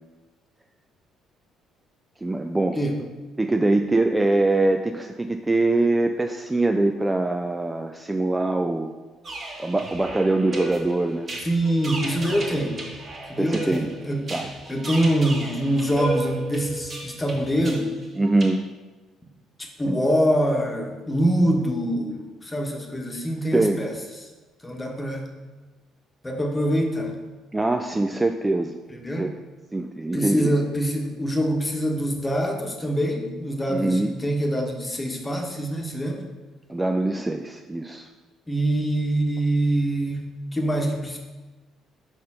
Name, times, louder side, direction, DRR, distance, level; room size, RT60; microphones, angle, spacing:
voice 1, 2.2-2.8 3.4-8.9 9.6-11.3 13.4-13.9 14.3-14.5 18.2-18.6 19.9-20.0 23.5-23.8 27.5-28.7 29.2-29.3 29.7-30.5 33.7-34.1 36.7-38.1, right 2 dB, 15° right, 6 dB, 0.4 m, -23 dB
sound 1, 9.2-18.5, right 2 dB, 40° right, 1.5 m, -35 dB
voice 2, 11.4-12.8 13.3-14.3 14.7-18.0 19.6-23.9 24.2-24.3 24.6-25.3 26.2-27.2 28.9-29.3 30.1-36.2 38.5-41.2, right 1 dB, 20° left, 2 dB, 1.2 m, -24 dB
5.2 x 4.2 x 5.6 m, 1.2 s
figure-of-eight pair, 50°, 0 cm